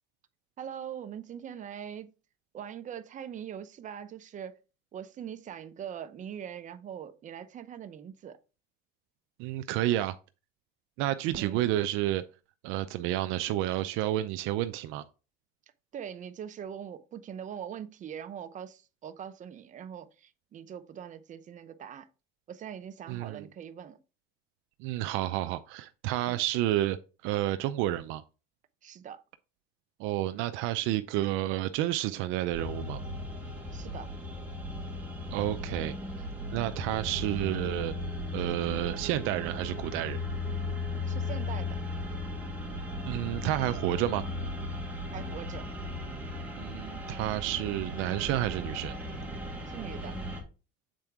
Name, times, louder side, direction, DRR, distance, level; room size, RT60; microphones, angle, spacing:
voice 1, 0.6-2.1 2.5-4.6 4.9-8.4 11.4-11.7 15.9-22.1 22.5-24.0 26.2-26.4 28.8-29.2 33.7-34.1 41.1-41.8 45.1-45.7 49.7-50.2, right 8 dB, 35° right, 0.8 m, -42 dB
voice 2, 9.4-10.2 11.0-12.2 12.6-15.0 23.1-23.5 24.8-27.0 27.2-28.2 30.0-33.0 35.3-35.9 36.5-37.9 38.3-40.2 43.0-44.2 46.5-48.9, right 14 dB, 75° right, 0.5 m, -30 dB
sound 1, 32.5-50.4, left 1 dB, 10° right, 1.8 m, -36 dB
7.6 x 4.4 x 3.6 m
supercardioid pair, 110°, 21 cm